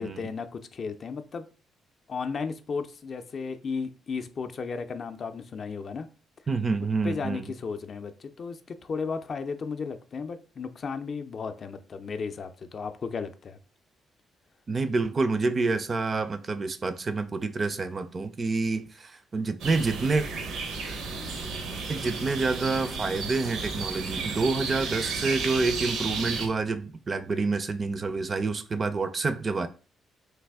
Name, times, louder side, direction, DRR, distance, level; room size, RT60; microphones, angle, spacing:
voice 1, 0.0-1.5 2.1-6.1 7.0-13.6, left 5 dB, 50° left, 0.4 m, -34 dB
voice 2, 6.5-7.5 14.7-20.3 21.9-29.7, right 3 dB, 35° right, 0.4 m, -28 dB
sound 1, 19.6-26.5, right 4 dB, 85° right, 0.7 m, -33 dB
3.3 x 2.3 x 3.4 m
cardioid pair, 90°, 0 cm